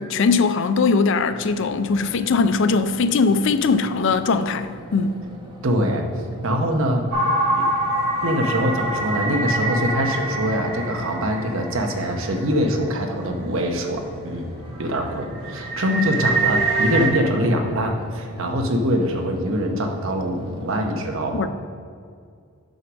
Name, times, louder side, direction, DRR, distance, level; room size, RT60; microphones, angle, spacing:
voice 1, 0.0-5.2 21.3-21.5, left 4 dB, 55° left, 0.4 m, -20 dB
sound 1, 1.2-20.9, right 1 dB, 20° right, 0.9 m, -41 dB
voice 2, 5.6-6.0 6.4-7.1 7.5-7.7 8.2-14.5 14.8-21.5, equal, 60° right, 0.8 m, -23 dB
sound 2, 7.1-12.9 13.4-13.5 14.0-14.3 14.7-17.1, right 2 dB, 80° right, 1.7 m, -25 dB
6.4 x 4.7 x 6.2 m
head